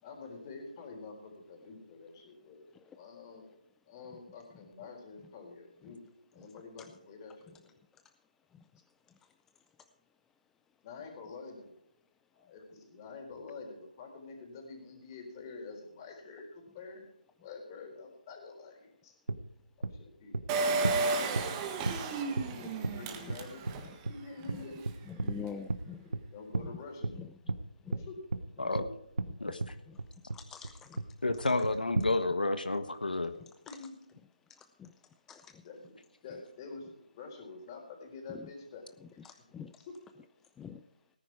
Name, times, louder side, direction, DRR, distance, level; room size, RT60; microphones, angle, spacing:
voice 1, 0.0-2.6 2.9-3.5 3.9-6.0 6.3-7.7 10.8-11.7 12.3-17.0 17.4-19.1 19.8-20.6 22.5-23.6 24.1-24.9 26.3-27.2 28.0-28.2 28.8-28.9 33.7-33.9 35.6-36.0 36.2-38.9 39.3-39.4 39.8-39.9, left 4 dB, 25° left, 2 dB, 4.2 m, -47 dB
sound 1, 19.3-19.4 19.8-19.9 20.3-20.4 20.8-21.0 21.3-21.5 21.8-22.0 22.4-22.5 22.8-22.9 23.3-23.4 23.6-23.7 24.0-24.1 24.5-24.6 24.8-25.4 25.7-25.8 26.1-26.2 26.5-26.7 27.0-27.2 27.5-27.6 27.9-28.0 28.3-28.4 28.7-28.8 29.2-29.3 29.6-29.7 30.0-30.4 30.6-30.7 31.0-31.4 31.6-32.1, right 3 dB, 85° right, 1.1 m, -32 dB
Engine, 20.5-23.9 24.4-24.5 24.7-24.8, right 3 dB, 20° right, 1.6 m, -32 dB
voice 2, 25.2-26.1 27.9-28.0 30.3-31.0 34.8-34.9 35.3-35.4 38.3-38.5 39.2-39.7 40.6-40.8, left 7 dB, 10° left, 8 dB, 0.4 m, -44 dB
voice 3, 31.2-33.3, left 2 dB, 90° left, 9 dB, 1.3 m, -30 dB
18.0 x 10.0 x 4.7 m, 0.75 s
figure-of-eight pair, 155°, 5 cm